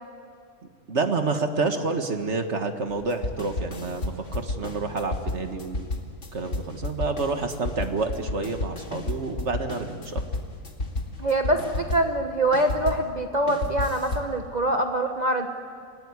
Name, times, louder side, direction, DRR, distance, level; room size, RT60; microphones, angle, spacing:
voice 1, 0.9-5.8 6.3-10.2, right 3 dB, 55° right, 6 dB, 1.8 m, -28 dB
sound 1, 2.9-13.1 13.5-14.3, left 2 dB, 55° left, 2.5 m, -32 dB
voice 2, 11.2-15.5, right 1 dB, 30° right, 4 dB, 1.3 m, -24 dB
27.0 x 18.0 x 9.7 m, 2.2 s
omnidirectional pair, 1.5 m